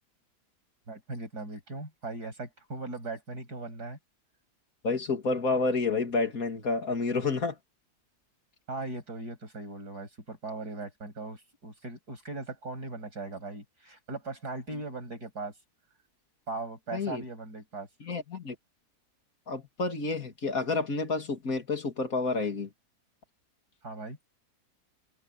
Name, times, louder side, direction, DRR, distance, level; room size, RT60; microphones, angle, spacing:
voice 1, 0.9-4.0 8.7-15.5 16.5-17.9 23.8-24.2, right 2 dB, 80° right, 7.7 m, -39 dB
voice 2, 4.8-7.6 16.9-17.2 18.0-18.6 19.5-22.7, left 3 dB, 60° left, 3.1 m, -29 dB
omnidirectional pair, 1.7 m